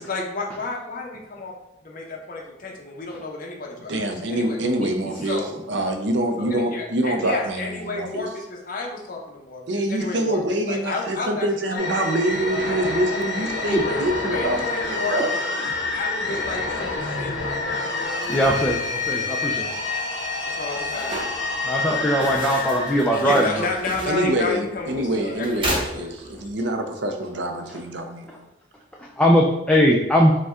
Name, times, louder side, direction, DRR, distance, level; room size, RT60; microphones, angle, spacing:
voice 1, 0.0-1.5 1.8-4.6 5.2-5.5 6.4-11.8 12.1-12.5 13.7-14.0 14.3-15.5 15.9-18.8 20.4-21.3 23.1-26.3, left 3 dB, 50° left, -1 dB, 0.8 m, -32 dB
voice 2, 3.9-5.4 5.7-8.3 9.7-15.3 24.0-28.5, right 1 dB, 75° right, 5 dB, 0.6 m, -25 dB
sound 1, 11.8-24.3, left 3 dB, 65° left, 1.4 m, -28 dB
sound 2, 18.1-26.6, right 1 dB, 30° right, 0.8 m, -35 dB
voice 3, 18.3-19.7 21.6-23.7 28.3-28.4 29.0-30.4, equal, 5° left, -3 dB, 0.4 m, -20 dB
5.2 x 2.2 x 3.6 m, 0.91 s
head